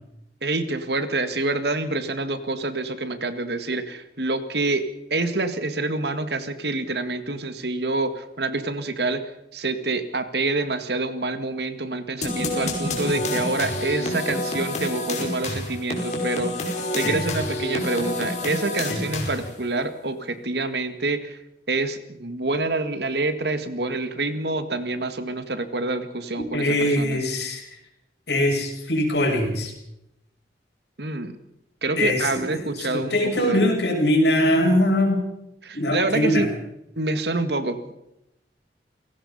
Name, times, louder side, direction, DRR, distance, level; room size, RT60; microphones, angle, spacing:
voice 1, 0.4-9.2 9.5-21.4 21.7-27.2 31.0-31.3 31.8-33.7 35.6-36.5 37.0-37.9, right 2 dB, 70° right, 10 dB, 2.0 m, -27 dB
sound 1, 12.2-19.6, left 1 dB, 40° left, 5.2 m, -28 dB
voice 2, 26.5-27.7 28.3-29.7 32.0-32.5 32.8-35.2 35.7-36.4, left 1 dB, 75° left, 1 dB, 6.8 m, -22 dB
29.0 x 17.5 x 5.6 m, 0.85 s
head